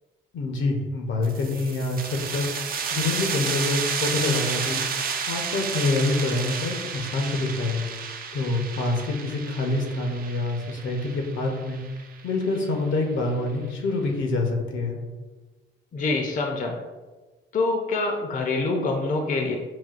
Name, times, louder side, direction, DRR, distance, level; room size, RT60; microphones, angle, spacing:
voice 1, 0.3-2.5 2.9-4.8 5.3-7.8 8.3-11.8 12.2-15.0, left 2 dB, 75° left, 2 dB, 0.8 m, -26 dB
sound 1, 1.2-12.6, right 6 dB, 50° right, 0.4 m, -31 dB
voice 2, 15.9-16.8 17.5-19.6, left 3 dB, 40° left, 2 dB, 0.5 m, -25 dB
6.0 x 2.2 x 2.4 m, 1.2 s
cardioid pair, 90°, 20 cm